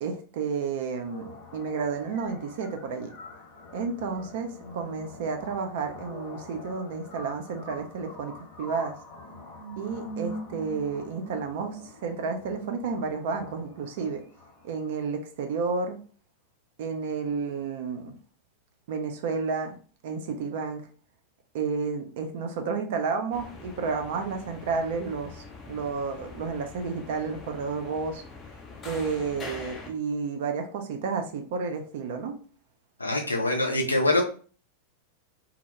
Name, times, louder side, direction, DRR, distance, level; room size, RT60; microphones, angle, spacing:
voice 1, 0.0-3.1 3.7-9.0 9.8-14.2 14.6-16.0 16.8-18.2 18.9-19.8 20.0-20.8 21.5-28.2 28.8-32.3, right 5 dB, 50° right, 5 dB, 0.4 m, -31 dB
sound 1, 1.0-15.0, equal, 40° left, 1.1 m, -44 dB
sound 2, 23.3-29.9, left 3 dB, 20° left, 0.5 m, -44 dB
voice 2, 33.0-34.2, left 2 dB, 80° left, 1 dB, 0.5 m, -24 dB
2.1 x 2.0 x 2.9 m, 0.40 s
figure-of-eight pair, 90°, 0 cm